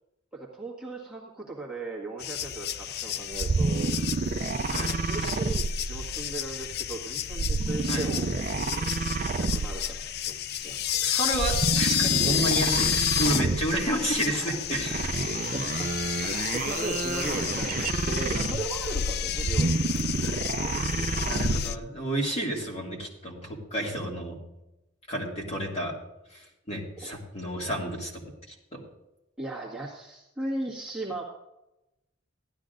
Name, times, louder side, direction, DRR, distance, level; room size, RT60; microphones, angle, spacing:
voice 1, 0.3-3.9 4.8-8.3 9.1-11.2 14.3-14.6 15.1-15.2 15.5-15.9 16.5-17.8 18.1-19.9 20.2-21.3 27.0-27.1 29.4-31.2, right 2 dB, 5° right, -5 dB, 1.7 m, -37 dB
sound 1, 2.2-21.8, left 10 dB, 55° left, 0.4 m, -31 dB
sound 2, 3.3-6.4 7.3-10.0 11.3-13.9 14.8-18.8 19.3-21.8, right 3 dB, 45° right, 0.4 m, -29 dB
voice 2, 11.0-15.1 16.7-16.8 20.2-20.7 21.2-24.4 25.1-25.9 26.3-28.2 28.7-28.8, right 1 dB, 30° left, -2 dB, 2.4 m, -31 dB
16.0 x 12.0 x 2.6 m, 0.94 s
head